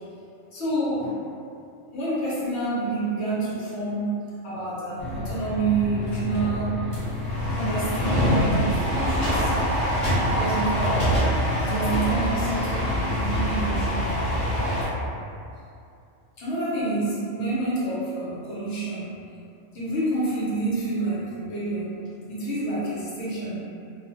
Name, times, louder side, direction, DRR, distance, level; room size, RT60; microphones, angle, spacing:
voice 1, 0.5-1.2 1.9-4.1 4.4-6.8 7.5-9.5 10.4-11.1 11.6-14.2 16.4-19.1 19.7-22.0 22.3-23.6, right 2 dB, 60° left, -8 dB, 1.0 m, -28 dB
sound 1, 5.0-14.9, equal, 40° left, 0.4 m, -25 dB
2.4 x 2.3 x 2.6 m, 2.5 s
omnidirectional pair, 1.3 m